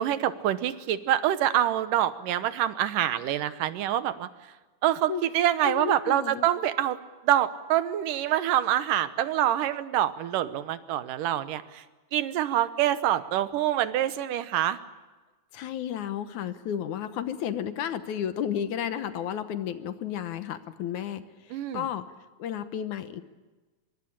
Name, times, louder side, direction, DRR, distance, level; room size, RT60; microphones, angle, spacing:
voice 1, 0.0-4.3 4.8-7.0 7.2-11.8 12.1-14.8 21.5-21.8, right 12 dB, 80° right, 13 dB, 2.6 m, -26 dB
voice 2, 5.6-6.5 15.5-22.0 22.4-23.2, left 9 dB, 70° left, 11 dB, 2.4 m, -32 dB
24.0 x 22.5 x 8.7 m, 1.2 s
omnidirectional pair, 3.8 m